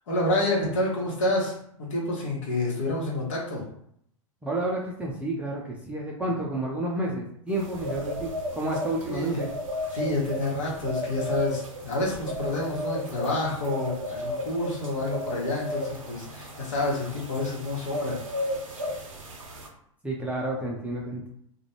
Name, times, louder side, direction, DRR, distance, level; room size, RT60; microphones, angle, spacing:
voice 1, 0.1-3.6 9.0-9.4 9.9-18.2, left 1 dB, 65° left, -4 dB, 1.1 m, -28 dB
voice 2, 4.4-9.5 20.0-21.3, right 1 dB, 10° right, -4 dB, 0.4 m, -30 dB
sound 1, 7.5-19.7, left 1 dB, 80° right, 0.7 m, -34 dB
2.4 x 2.1 x 2.9 m, 0.70 s
figure-of-eight pair, 100°, 17 cm